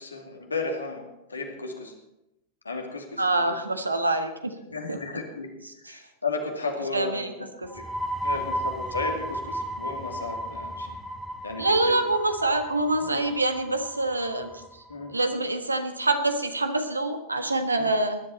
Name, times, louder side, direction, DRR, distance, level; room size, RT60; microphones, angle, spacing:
voice 1, 0.0-1.9 2.6-3.6 4.6-7.8 8.2-11.0 11.4-12.0 13.0-13.2 14.9-15.1 17.7-17.9, left 3 dB, 80° left, 2 dB, 2.4 m, -34 dB
voice 2, 3.2-4.5 4.9-5.0 5.8-6.0 6.9-7.3 7.6-7.7 8.3-8.5 11.6-14.5 15.1-18.2, right 2 dB, 80° right, 7 dB, 1.4 m, -26 dB
sound 1, 7.6-15.1, equal, ahead, 1.5 m, -34 dB
20.0 x 11.0 x 4.3 m, 0.89 s
figure-of-eight pair, 90°, 0 cm